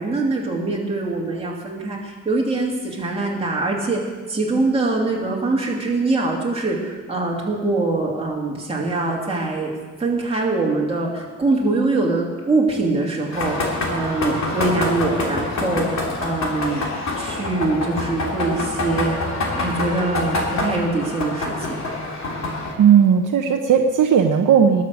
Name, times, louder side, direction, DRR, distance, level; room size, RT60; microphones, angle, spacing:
voice 1, 0.0-4.0 4.3-9.7 10.0-16.9 17.2-21.8, right 3 dB, 20° right, -3 dB, 2.6 m, -23 dB
sound 1, 13.3-22.7, left 2 dB, 55° left, 2.8 m, -26 dB
voice 2, 22.8-24.8, right 8 dB, 70° right, 3 dB, 0.9 m, -15 dB
20.0 x 6.7 x 6.5 m, 1.3 s
wide cardioid pair, 150°, 32 cm